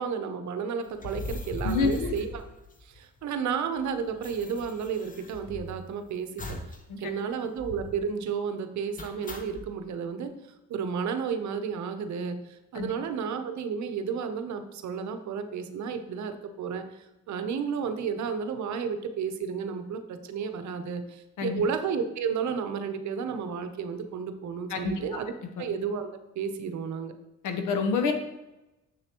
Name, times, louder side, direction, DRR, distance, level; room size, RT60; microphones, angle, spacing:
voice 1, 0.0-2.5 2.8-6.6 7.0-10.3 10.7-26.1 26.4-27.1, right 6 dB, 70° right, 8 dB, 0.8 m, -32 dB
Screen door with spring, 0.9-3.2 3.5-3.6 3.8-5.9 6.4-6.8 7.1-7.2 7.6-8.1 9.0-9.7, left 2 dB, 25° left, 0.8 m, -39 dB
voice 2, 1.6-2.1 6.9-7.1 12.7-12.9 21.4-21.6 24.7-25.0 27.4-28.1, left 4 dB, 80° left, 6 dB, 1.0 m, -27 dB
6.8 x 6.6 x 2.9 m, 0.97 s
cardioid pair, 90°, 30 cm